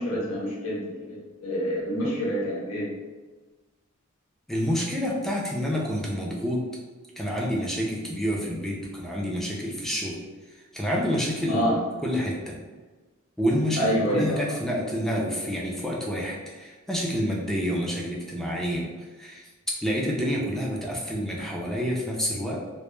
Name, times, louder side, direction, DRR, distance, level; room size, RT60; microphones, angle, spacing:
voice 1, 0.0-2.9 11.5-11.8 13.8-14.4, equal, 70° left, -5 dB, 0.6 m, -27 dB
voice 2, 4.5-6.6 7.2-10.2 10.7-12.6 13.4-18.9 19.2-19.5 19.8-22.6, equal, ahead, -3 dB, 0.4 m, -28 dB
2.1 x 2.1 x 3.0 m, 1.3 s
head